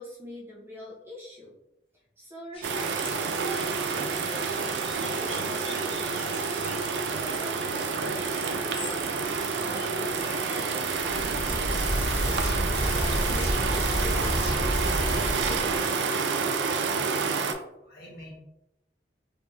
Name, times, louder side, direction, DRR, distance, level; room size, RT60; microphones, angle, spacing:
voice 1, 0.0-1.5 2.2-6.4 7.1-9.1 9.5-12.5 12.8-14.7 15.0-15.9, left 1 dB, 15° right, -3 dB, 0.5 m, -43 dB
sound 1, 2.5-13.8, left 2 dB, 30° left, 0.6 m, -44 dB
sound 2, 2.6-17.5, right 5 dB, 85° right, 0.4 m, -29 dB
sound 3, 11.0-15.9, equal, 80° left, 1.1 m, -29 dB
voice 2, 16.9-17.5 17.8-18.4, left 1 dB, 55° left, -5 dB, 1.4 m, -45 dB
3.5 x 3.0 x 2.6 m, 0.89 s
head